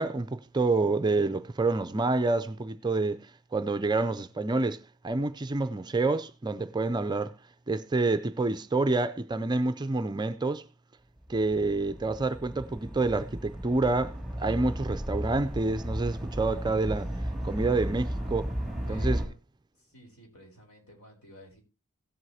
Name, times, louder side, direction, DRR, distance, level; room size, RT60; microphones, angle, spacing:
voice 1, 0.0-3.2 3.5-7.3 7.7-10.6 11.3-17.1 17.4-18.5 18.9-19.2, right 3 dB, 20° right, 0.4 m, -28 dB
sound 1, 11.2-19.3, equal, ahead, 2.3 m, -34 dB
voice 2, 18.8-19.3 19.8-21.6, equal, 80° left, 4.2 m, -53 dB
17.0 x 7.9 x 2.8 m
head